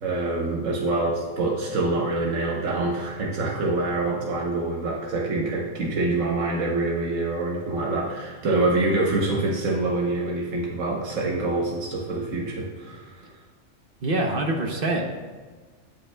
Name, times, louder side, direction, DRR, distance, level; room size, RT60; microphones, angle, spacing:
voice 1, 0.0-13.4, right 2 dB, 90° right, -2 dB, 1.4 m, -26 dB
voice 2, 14.0-15.0, right 2 dB, 50° right, 3 dB, 1.0 m, -25 dB
16.0 x 5.6 x 2.2 m, 1.4 s
omnidirectional pair, 1.3 m